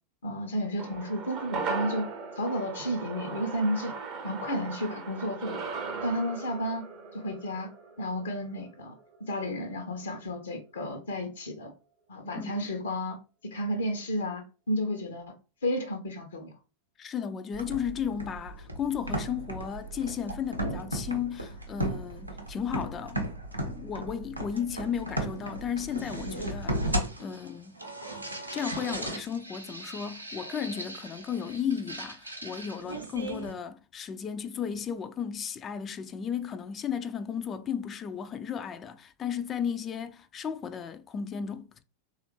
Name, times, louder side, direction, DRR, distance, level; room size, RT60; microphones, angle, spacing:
voice 1, 0.2-2.1 2.3-3.9 4.2-5.7 6.0-6.9 7.1-7.7 8.0-8.9 9.3-11.7 12.1-13.2 13.4-15.2 15.6-16.5, equal, 70° left, 0.7 m, -32 dB
sound 1, 0.8-9.3 9.6-9.7, right 4 dB, 30° right, 0.6 m, -38 dB
voice 2, 17.0-23.2 23.7-27.8 28.5-41.8, left 7 dB, 25° left, 0.3 m, -34 dB
sound 2, 17.5-33.5, right 1 dB, 85° right, 0.6 m, -36 dB
3.3 x 2.4 x 3.1 m
figure-of-eight pair, 90°, 0 cm